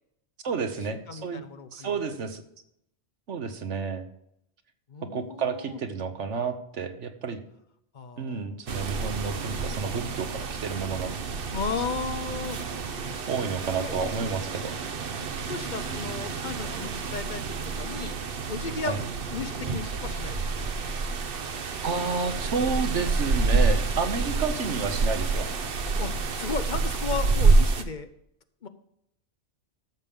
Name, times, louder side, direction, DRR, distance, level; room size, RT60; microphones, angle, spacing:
voice 1, 0.4-1.4 1.7-2.4 3.3-4.0 5.1-7.4 8.2-11.1 13.3-14.7 18.9-19.0 21.8-25.5, right 5 dB, 90° right, 8 dB, 1.4 m, -30 dB
voice 2, 1.1-2.0 4.9-5.8 7.9-8.6 11.5-12.6 13.8-14.0 15.5-18.2 18.5-19.0 19.3-20.4 26.0-28.1 28.6-28.7, left 5 dB, 50° left, 10 dB, 0.8 m, -35 dB
sound 1, 8.7-27.8, right 4 dB, 55° right, 1.0 m, -28 dB
13.5 x 7.0 x 3.6 m, 0.77 s
omnidirectional pair, 1.2 m